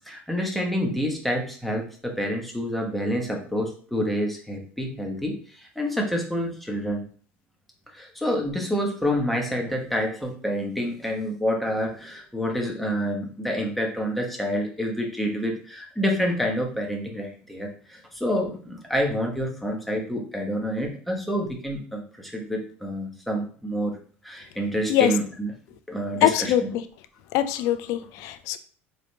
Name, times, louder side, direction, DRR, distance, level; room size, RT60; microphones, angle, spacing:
voice 1, 0.1-7.0 7.9-24.0 24.2-25.5 25.9-26.7, equal, ahead, 0 dB, 1.1 m, -28 dB
voice 2, 26.2-26.8 27.3-28.6, left 12 dB, 50° left, 11 dB, 0.4 m, -23 dB
4.0 x 3.2 x 2.8 m, 0.43 s
figure-of-eight pair, 70°, 7 cm